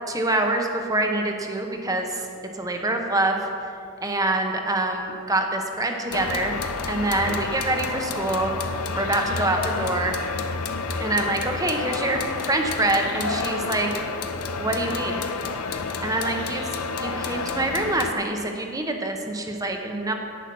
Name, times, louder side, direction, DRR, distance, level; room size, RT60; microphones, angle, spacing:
voice 1, 0.1-2.2 2.6-3.5 4.0-6.6 6.9-8.5 9.0-10.2 11.0-13.9 14.6-15.2 16.0-16.6 17.0-20.1, right 2 dB, 15° right, 3 dB, 1.0 m, -25 dB
sound 1, 6.1-18.1, left 4 dB, 85° left, 0.7 m, -30 dB
10.0 x 9.0 x 6.1 m, 2.5 s
head